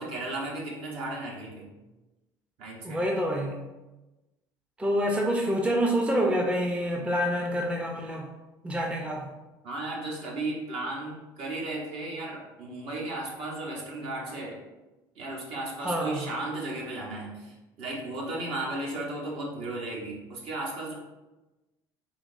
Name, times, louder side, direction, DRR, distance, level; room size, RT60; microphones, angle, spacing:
voice 1, 0.0-1.7 2.6-3.0 9.6-14.6 15.1-20.9, right 2 dB, 60° right, -3 dB, 1.0 m, -35 dB
voice 2, 2.8-3.6 4.8-8.3 8.6-9.3 15.8-16.2, equal, 10° right, 1 dB, 0.5 m, -27 dB
3.5 x 2.8 x 2.6 m, 1.1 s
hypercardioid pair, 70°, 11 cm